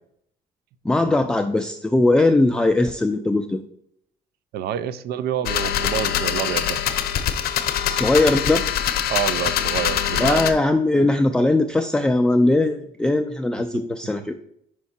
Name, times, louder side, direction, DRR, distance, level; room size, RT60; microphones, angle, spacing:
voice 1, 0.8-3.6 7.9-8.6 10.2-14.4, left 2 dB, 5° left, 6 dB, 0.3 m, -20 dB
voice 2, 4.5-6.8 9.1-10.4 13.7-13.8, right 10 dB, 70° right, 15 dB, 0.4 m, -27 dB
sound 1, 5.5-10.5, left 10 dB, 65° left, 0.7 m, -23 dB
5.7 x 4.5 x 4.3 m, 0.72 s
cardioid pair, 110°, 17 cm